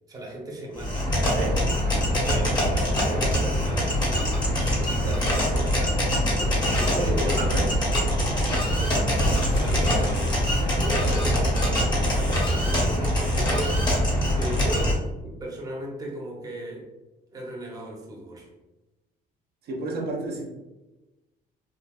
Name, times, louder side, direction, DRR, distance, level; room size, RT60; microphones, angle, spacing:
voice 1, 0.1-7.7 8.3-16.9 17.3-18.5, right 1 dB, 20° right, -2 dB, 0.8 m, -36 dB
sound 1, 0.8-14.9, equal, 25° left, 1.1 m, -23 dB
voice 2, 7.2-7.7 19.6-20.5, right 2 dB, 65° right, -1 dB, 0.7 m, -32 dB
sound 2, 9.3-13.1 13.3-13.4, equal, 80° left, 0.8 m, -35 dB
3.5 x 2.6 x 2.4 m, 1.1 s
cardioid pair, 110°, 17 cm